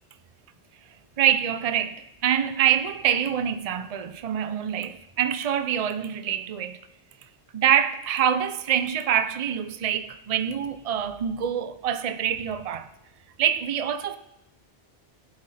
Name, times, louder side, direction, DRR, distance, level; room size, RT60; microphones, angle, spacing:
voice 1, 1.2-6.8 7.5-12.9 13.4-14.2, right 9 dB, 40° right, 0.6 m, -25 dB
16.5 x 8.0 x 4.2 m
omnidirectional pair, 1.2 m